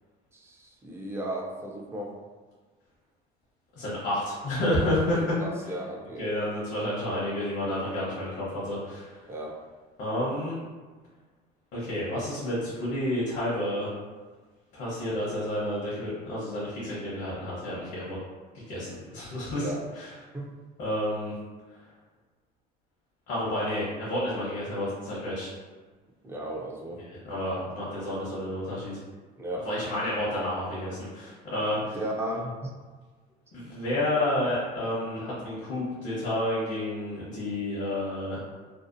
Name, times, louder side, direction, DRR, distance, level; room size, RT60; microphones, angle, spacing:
voice 1, 0.3-2.1 5.1-6.3 9.3-9.6 19.6-19.8 20.3-20.5 26.2-27.0 29.4-29.7 31.9-32.7, right 1 dB, 15° right, -1 dB, 0.4 m, -35 dB
voice 2, 3.7-5.3 6.2-9.2 10.0-10.5 11.7-13.9 14.7-18.2 18.5-20.1 20.8-21.3 23.3-25.5 27.0-29.0 29.6-32.0 33.5-38.4, left 1 dB, 60° left, -9 dB, 0.9 m, -30 dB
2.7 x 2.0 x 2.5 m, 1.4 s
cardioid pair, 110°, 19 cm